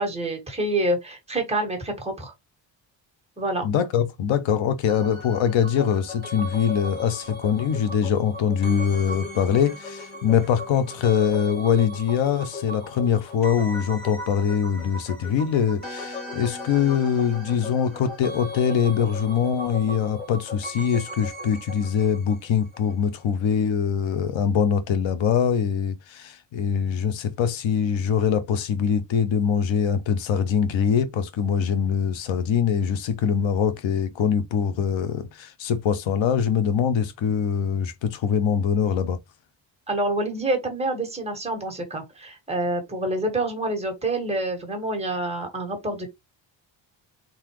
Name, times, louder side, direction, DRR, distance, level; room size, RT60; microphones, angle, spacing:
voice 1, 0.0-2.3 3.4-3.6 39.9-46.1, right 1 dB, 15° right, 1.7 m, -27 dB
voice 2, 3.6-39.2, left 7 dB, 85° left, 1.0 m, -23 dB
sound 1, 4.9-22.9 23.2-23.3, left 2 dB, 20° left, 2.9 m, -37 dB
4.4 x 4.0 x 3.0 m
wide cardioid pair, 175°, 45 cm